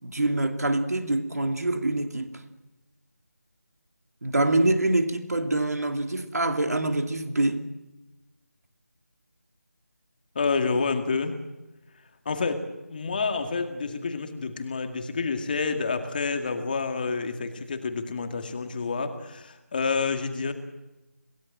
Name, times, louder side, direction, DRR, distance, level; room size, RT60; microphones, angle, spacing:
voice 1, 0.0-2.4 4.2-7.6, right 2 dB, 70° right, 2.7 m, -25 dB
voice 2, 10.3-11.4 12.3-20.5, left 4 dB, 35° left, 2.2 m, -28 dB
27.0 x 17.0 x 7.7 m
figure-of-eight pair, 165°, 9 cm